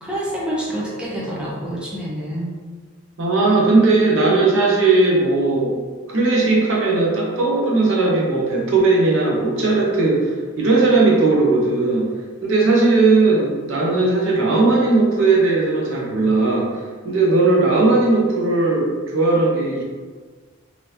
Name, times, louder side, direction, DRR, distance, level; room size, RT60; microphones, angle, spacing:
voice 1, 0.0-2.5, right 1 dB, 5° right, -6 dB, 0.4 m, -27 dB
voice 2, 3.2-5.8 6.1-12.1 12.4-16.7 17.0-19.8, right 3 dB, 70° right, -3 dB, 0.8 m, -17 dB
3.3 x 2.5 x 2.8 m, 1.4 s
head